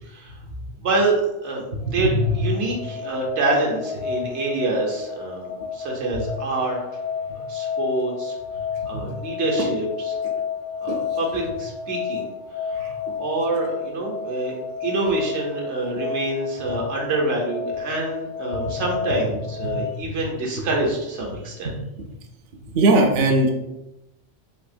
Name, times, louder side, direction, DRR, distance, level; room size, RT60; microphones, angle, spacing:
voice 1, 0.0-0.3 0.8-1.6 1.9-6.8 7.5-8.3 8.9-10.1 10.8-12.3 12.6-14.6 14.8-21.7, right 2 dB, 80° right, -1 dB, 1.1 m, -26 dB
voice 2, 1.7-2.4 6.1-6.2 8.8-9.1 9.6-9.7 10.2-10.3 10.9-11.0 12.8-12.9 15.0-15.1 18.5-18.8 19.6-19.8 20.0-20.1 20.6-20.7 21.6-21.8 22.7-23.5, right 1 dB, 60° right, 2 dB, 0.6 m, -22 dB
sound 1, 1.8-20.0, left 7 dB, 75° left, 0.9 m, -31 dB
3.7 x 2.7 x 2.5 m, 0.93 s
omnidirectional pair, 1.2 m